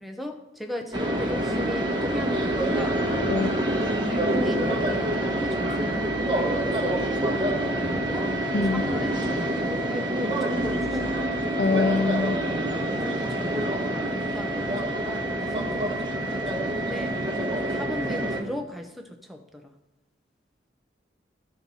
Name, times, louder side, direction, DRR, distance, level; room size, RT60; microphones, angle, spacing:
voice 1, 0.0-3.0 4.1-11.2 12.9-17.2 17.7-19.7, left 1 dB, ahead, 4 dB, 0.7 m, -37 dB
sound 1, 0.9-18.4, right 1 dB, 25° right, 1.2 m, -26 dB
voice 2, 3.3-3.6 8.5-8.8 11.6-12.4, left 3 dB, 60° left, 10 dB, 0.4 m, -24 dB
12.5 x 4.5 x 5.4 m, 0.94 s
head